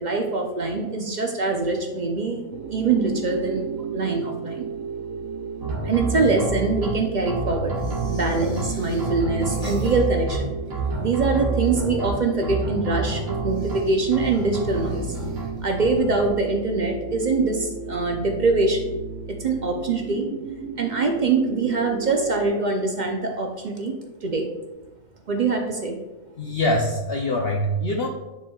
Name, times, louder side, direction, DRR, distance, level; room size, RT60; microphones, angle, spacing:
voice 1, 0.0-2.4 2.7-3.6 3.9-4.7 5.8-7.7 8.1-10.5 11.0-15.1 15.6-18.8 19.3-20.3 20.8-23.9 24.2-24.5 25.3-26.0, right 3 dB, 50° right, 3 dB, 0.6 m, -23 dB
sound 1, 2.5-22.5, right 4 dB, 70° right, 0.9 m, -34 dB
sound 2, 5.6-6.9 7.3-8.7 9.0-10.4 10.7-12.1 12.4-13.8 14.1-15.5 15.8-16.3, right 3 dB, 85° right, 1.8 m, -29 dB
sound 3, 7.7-10.3 10.6-11.4 13.4-15.9, equal, 5° left, 1.1 m, -40 dB
voice 2, 26.4-28.1, left 1 dB, 60° left, 1 dB, 0.7 m, -23 dB
9.7 x 4.3 x 2.3 m, 1.1 s
omnidirectional pair, 1.4 m